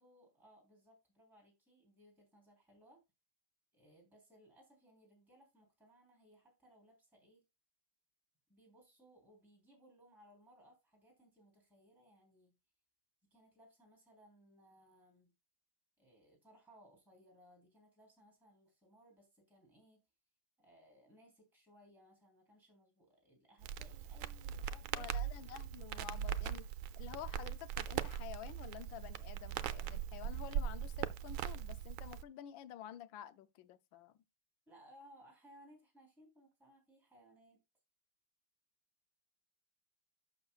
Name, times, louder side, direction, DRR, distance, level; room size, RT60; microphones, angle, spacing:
voice 1, 0.0-3.0 3.7-7.4 8.5-12.6 13.3-15.3 16.0-20.0 20.6-25.1 34.7-37.6, equal, ahead, 3.9 m, -64 dB
Crackle, 23.6-32.2, right 9 dB, 80° right, 1.4 m, -40 dB
voice 2, 24.9-26.7 27.0-34.1, left 11 dB, 70° left, 1.3 m, -50 dB
11.5 x 6.7 x 2.4 m
omnidirectional pair, 2.4 m